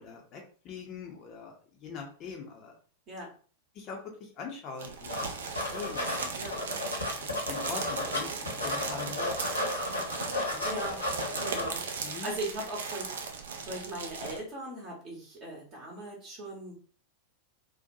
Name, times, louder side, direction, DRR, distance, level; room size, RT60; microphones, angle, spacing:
voice 1, 0.0-1.5 1.8-2.7 3.7-5.3 5.7-6.7 7.2-9.5 10.2-10.7 11.2-11.3 12.0-12.3, left 5 dB, 35° left, 1 dB, 0.5 m, -43 dB
sound 1, 4.8-14.4, right 5 dB, 60° right, 0.4 m, -38 dB
sound 2, 5.1-5.3 5.5-8.2 8.5-11.7, left 1 dB, 80° left, 0.9 m, -33 dB
voice 2, 10.6-11.0 11.4-16.7, right 1 dB, 35° right, -3 dB, 0.9 m, -39 dB
2.6 x 2.2 x 2.6 m, 0.42 s
figure-of-eight pair, 90°, 0 cm